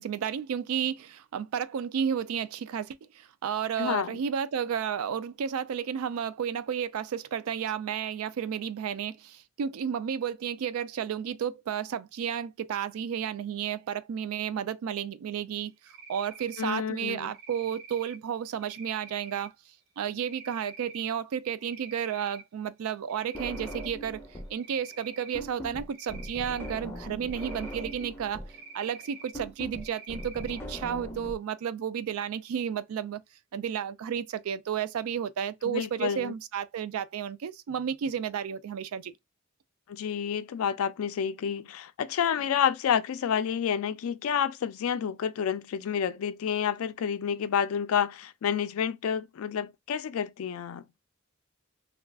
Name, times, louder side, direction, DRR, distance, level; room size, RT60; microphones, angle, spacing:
voice 1, 0.0-19.5 20.0-28.4 28.7-33.2 33.5-39.1, right 8 dB, 80° right, 0.3 m, -32 dB
voice 2, 3.8-4.1 16.6-17.3 35.6-36.3 39.9-50.8, left 8 dB, 75° left, 0.3 m, -29 dB
Cricket, 15.9-16.7 17.3-18.2 18.6-19.5 20.2-21.0 21.4-22.4 22.8-24.0 24.6-25.4 25.9-26.8 27.3-28.1 28.5-29.3 29.8-30.6, right 5 dB, 50° right, 0.7 m, -47 dB
sound 1, 23.3-24.6 24.9-31.3, equal, 10° left, 0.5 m, -40 dB
2.3 x 2.3 x 3.4 m
head